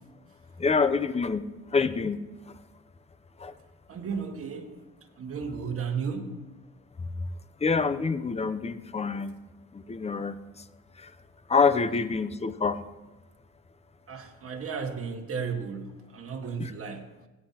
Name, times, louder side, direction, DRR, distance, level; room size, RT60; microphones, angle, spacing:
voice 1, 0.6-1.4 1.7-2.2 3.4-3.5 7.6-9.3 9.7-10.3 11.5-12.8 16.6-16.7, left 5 dB, 20° left, 12 dB, 0.6 m, -26 dB
voice 2, 3.9-4.7 5.2-6.3 14.1-17.0, right 6 dB, 50° right, 4 dB, 1.6 m, -34 dB
17.0 x 9.8 x 2.9 m, 1.1 s
cardioid pair, 90°, 30 cm